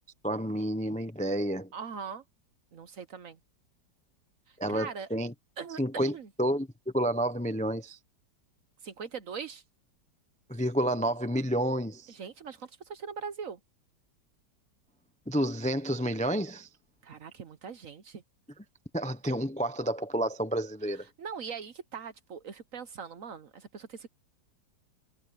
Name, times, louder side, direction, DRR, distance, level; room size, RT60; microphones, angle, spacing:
voice 1, 0.2-1.7 4.6-5.3 5.8-6.7 6.9-8.0 10.5-12.1 15.3-16.7 18.9-21.0, right 1 dB, 5° left, 0.6 m, -30 dB
voice 2, 1.7-2.2 2.7-3.4 4.5-5.1 5.6-6.3 8.8-9.6 12.1-13.6 17.0-18.2 21.2-24.1, right 6 dB, 55° right, 1.2 m, -41 dB
omnidirectional pair, 2.0 m